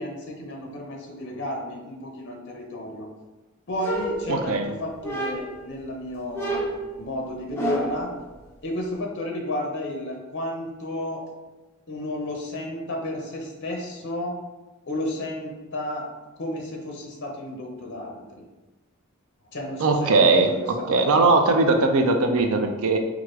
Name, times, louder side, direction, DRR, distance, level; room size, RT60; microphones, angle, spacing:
voice 1, 0.0-3.1 3.7-6.7 7.0-8.1 8.6-11.2 11.9-14.4 14.9-16.1 16.4-18.2 19.5-20.4 20.9-21.3, left 1 dB, 55° left, 0 dB, 0.7 m, -32 dB
sound 1, 3.8-4.6 5.0-5.7 6.3-8.1, right 1 dB, 10° left, 0.7 m, -29 dB
voice 2, 4.3-4.7 19.8-20.5 20.9-23.0, right 3 dB, 85° right, 5 dB, 0.5 m, -19 dB
4.7 x 2.4 x 3.1 m, 1.1 s
head